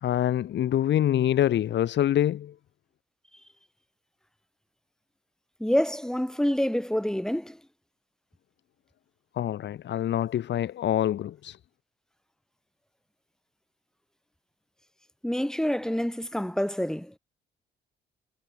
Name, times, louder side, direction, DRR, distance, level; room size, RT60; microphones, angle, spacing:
voice 1, 0.0-2.5 9.4-11.6, left 11 dB, 65° left, 1.1 m, -25 dB
voice 2, 5.6-7.6 15.2-17.1, equal, 5° left, 4.0 m, -27 dB
cardioid pair, 90°, 20 cm